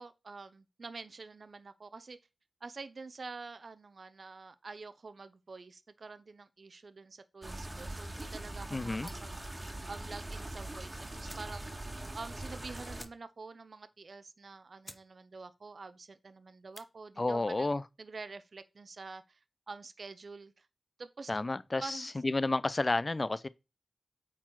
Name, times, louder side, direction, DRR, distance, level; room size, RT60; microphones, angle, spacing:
voice 1, 0.0-2.2 2.6-9.4 9.9-11.8 12.1-17.7 18.0-19.4 19.7-20.7 21.0-21.3 21.8-22.1, right 4 dB, 60° right, 0.6 m, -47 dB
sound 1, 7.4-13.0, right 1 dB, 20° right, 1.6 m, -42 dB
voice 2, 8.7-9.1 17.2-17.8 21.3-23.5, left 2 dB, 35° left, 0.3 m, -31 dB
sound 2, 9.0-9.4 10.7-10.8 11.2-11.6 11.9-12.0 12.3-12.4 12.9-13.5 13.9-14.0 14.5-14.6 14.8-15.1 15.4-15.8 16.5-16.9, equal, 10° left, 0.7 m, -53 dB
8.6 x 4.0 x 4.6 m
wide cardioid pair, 80°, 0 cm